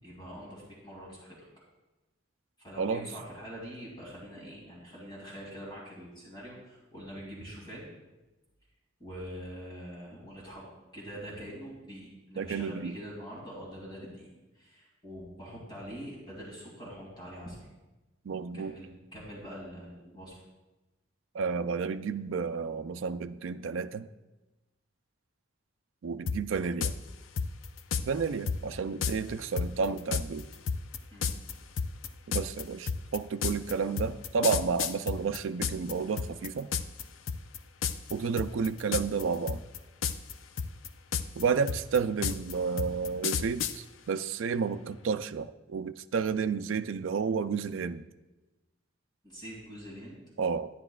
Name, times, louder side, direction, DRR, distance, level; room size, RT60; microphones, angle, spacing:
voice 1, 0.0-1.5 2.6-7.9 9.0-14.3 14.5-17.7 18.5-20.4 31.1-31.3 49.2-50.2, equal, 25° left, -5 dB, 2.6 m, -44 dB
voice 2, 12.4-13.0 18.3-18.7 21.3-24.1 26.0-26.9 28.0-30.5 32.3-36.7 38.1-39.6 41.3-48.0 50.4-50.7, right 5 dB, 75° right, 10 dB, 0.4 m, -31 dB
sound 1, 26.3-26.4 26.8-26.9 27.4-28.0 28.5-28.6 29.0-29.1 29.6-35.9 36.2-37.0 37.3-37.6 37.8-38.1 38.4-39.2 39.5-40.3 40.6-43.7, left 6 dB, 80° left, 0.5 m, -31 dB
12.0 x 9.9 x 2.4 m, 1.1 s
head